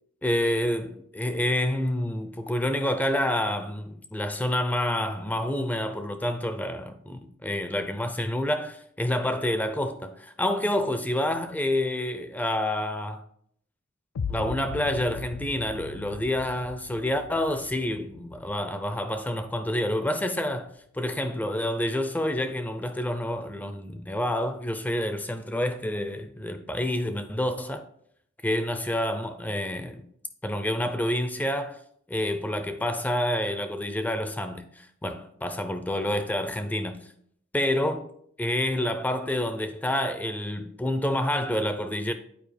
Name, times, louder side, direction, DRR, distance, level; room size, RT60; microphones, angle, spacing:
voice 1, 0.2-13.2 14.3-27.9 28.4-30.1 30.4-31.8 32.1-37.1 37.5-38.1 38.4-42.1, left 1 dB, 5° left, 0.4 m, -28 dB
sound 1, 14.1-20.2, left 5 dB, 90° left, 0.4 m, -39 dB
9.1 x 4.7 x 3.3 m
head